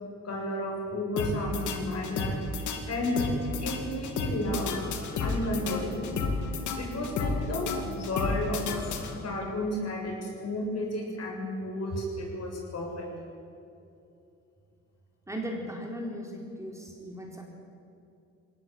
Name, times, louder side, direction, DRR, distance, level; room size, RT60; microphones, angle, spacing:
voice 1, 0.2-2.4 2.9-3.3 3.6-4.7 5.2-6.2 6.8-8.7 9.1-13.1, left 1 dB, 55° left, 0 dB, 7.3 m, -32 dB
sound 1, 1.2-9.5, left 3 dB, 75° left, 2.5 m, -32 dB
voice 2, 15.3-17.4, equal, 10° right, 0 dB, 4.3 m, -37 dB
21.0 x 18.0 x 8.8 m, 2.7 s
cardioid pair, 90°, 30 cm